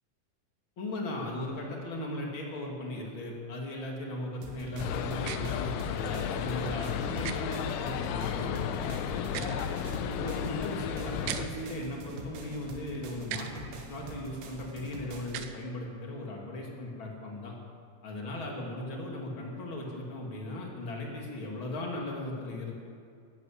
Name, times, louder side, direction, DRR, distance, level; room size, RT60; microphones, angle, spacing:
voice 1, 0.8-9.7 10.0-17.5 18.0-22.7, left 1 dB, 35° left, -1 dB, 2.2 m, -37 dB
sound 1, 4.4-15.4, right 3 dB, 70° right, 3.7 m, -45 dB
sound 2, 4.8-11.5, left 9 dB, 85° left, 3.1 m, -33 dB
sound 3, 5.2-5.4 7.2-7.4 9.2-9.6 11.2-11.4 13.2-13.5 15.3-15.5, right 11 dB, 85° right, 3.2 m, -37 dB
15.0 x 11.0 x 8.7 m, 2.3 s
omnidirectional pair, 5.4 m